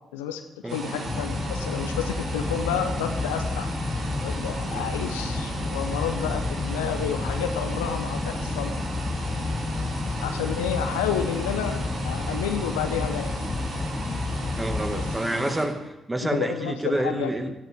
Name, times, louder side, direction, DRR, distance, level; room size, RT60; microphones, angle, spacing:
voice 1, 0.1-3.7 4.2-8.7 9.4-9.5 10.2-13.3 14.9-15.0 15.3-15.6 16.3-17.5, left 8 dB, 75° left, 7 dB, 1.0 m, -30 dB
sound 1, 0.7-15.6, right 2 dB, 60° right, 3.8 m, -35 dB
sound 2, 1.0-15.2, left 3 dB, 30° left, 0.9 m, -31 dB
voice 2, 14.6-17.5, right 1 dB, 15° right, 6 dB, 2.0 m, -28 dB
17.5 x 13.0 x 3.6 m, 1.0 s
figure-of-eight pair, 40°, 0 cm